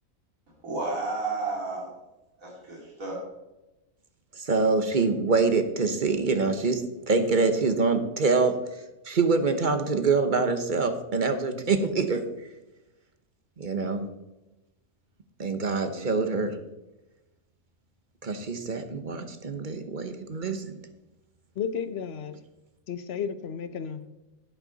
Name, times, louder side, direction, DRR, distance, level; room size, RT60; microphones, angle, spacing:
voice 1, 0.6-1.9 2.4-3.2, right 3 dB, 75° right, 3.4 m, -32 dB
voice 2, 4.4-6.8 7.1-8.5 9.1-12.2 13.6-14.0 15.4-16.5 18.2-20.7, right 4 dB, 40° right, 1.0 m, -25 dB
voice 3, 21.6-22.4 22.9-24.0, left 7 dB, 55° left, 0.9 m, -33 dB
11.5 x 9.2 x 4.0 m
omnidirectional pair, 1.4 m